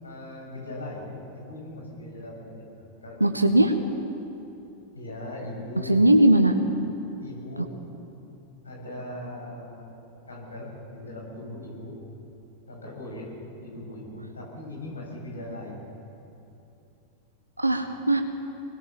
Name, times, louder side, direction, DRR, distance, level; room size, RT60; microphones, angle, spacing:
voice 1, 0.0-3.2 4.9-6.0 7.2-7.7 8.6-9.9 10.3-12.0 12.7-13.3 13.6-15.9, left 1 dB, 75° left, -2 dB, 7.4 m, -39 dB
voice 2, 3.2-3.7 5.8-6.6 17.6-18.2, right 1 dB, 85° right, 6 dB, 1.3 m, -19 dB
25.0 x 20.0 x 7.3 m, 2.8 s
figure-of-eight pair, 90°, 0 cm